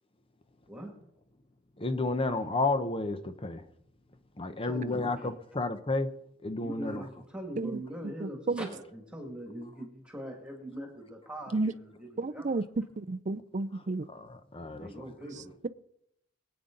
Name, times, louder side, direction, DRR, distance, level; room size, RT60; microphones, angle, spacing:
voice 1, 1.8-3.6 4.4-6.1 6.4-7.1 14.1-14.9 15.3-15.4, left 3 dB, 25° left, 0.9 m, -31 dB
voice 2, 4.6-5.3 6.6-12.6 14.8-15.5, equal, 5° right, 2.2 m, -42 dB
voice 3, 8.2-8.7 11.5-11.7 12.2-14.1, right 3 dB, 35° right, 0.5 m, -32 dB
23.0 x 8.8 x 3.9 m
head